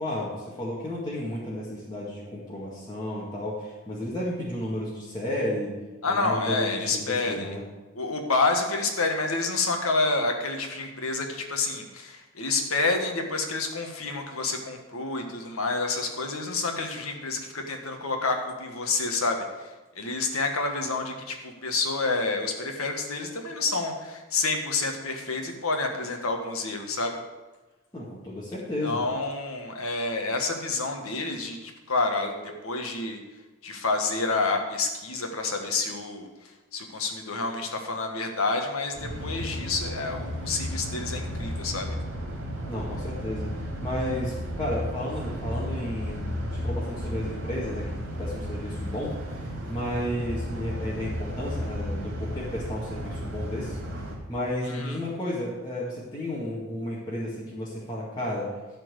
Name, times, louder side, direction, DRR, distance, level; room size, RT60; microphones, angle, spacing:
voice 1, 0.0-5.8 6.0-7.6 27.9-29.0 42.7-43.5 43.8-53.8 54.3-58.5, left 1 dB, 20° left, -8 dB, 1.9 m, -33 dB
voice 2, 6.0-7.5 7.9-19.7 19.9-27.2 28.8-32.3 32.6-33.2 33.6-36.3 36.7-41.9 54.7-55.0, left 3 dB, 80° left, 4 dB, 1.6 m, -28 dB
sound 1, 39.0-54.2, equal, 75° right, 2.4 m, -33 dB
12.0 x 4.5 x 8.1 m, 1.2 s
head